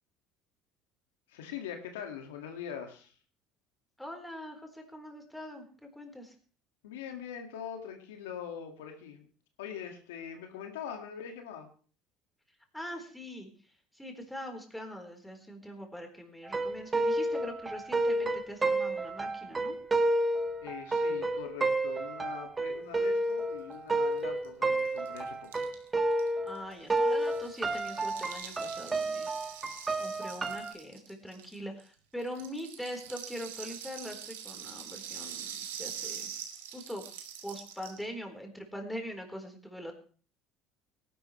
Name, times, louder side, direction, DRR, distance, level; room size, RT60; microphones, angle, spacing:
voice 1, 1.3-3.1 6.8-9.3 9.6-11.7 20.6-25.7, left 8 dB, 85° left, 4 dB, 2.0 m, -42 dB
voice 2, 4.0-6.3 12.7-13.5 13.9-19.8 26.4-29.3 30.0-36.3 36.7-37.0 37.4-39.9, equal, 5° left, 3 dB, 4.1 m, -42 dB
sound 1, 16.4-26.6 26.9-30.7, right 2 dB, 25° right, 1.6 m, -30 dB
Rattle (instrument), 24.2-24.3 24.4-24.5 24.7-31.9 32.2-38.1, right 9 dB, 90° right, 1.8 m, -44 dB
18.5 x 11.5 x 3.2 m, 0.40 s
hypercardioid pair, 75°, 0 cm